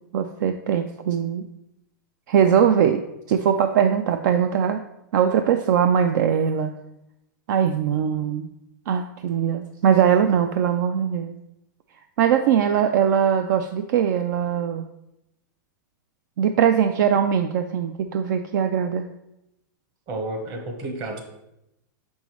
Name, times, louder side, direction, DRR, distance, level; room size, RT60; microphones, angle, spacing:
voice 1, 0.1-1.4 2.3-3.0 3.3-4.8 5.1-6.7 7.5-8.5 8.9-11.3 12.2-14.9 16.4-19.1, right 8 dB, 65° right, 7 dB, 0.4 m, -21 dB
voice 2, 20.1-21.2, right 2 dB, 40° right, 4 dB, 1.1 m, -31 dB
6.1 x 5.4 x 3.1 m, 0.86 s
supercardioid pair, 140°, 11 cm